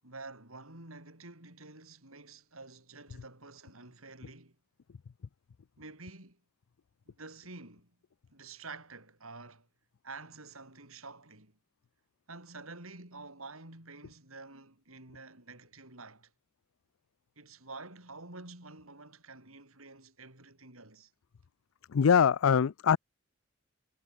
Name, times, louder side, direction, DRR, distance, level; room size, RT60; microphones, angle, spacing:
voice 1, 0.0-4.6 5.8-6.4 7.1-7.9 8.3-9.7 10.0-11.6 12.3-16.3 17.4-21.1, right 3 dB, 80° right, 7.6 m, -49 dB
voice 2, 21.9-23.0, left 7 dB, 70° left, 0.4 m, -23 dB
head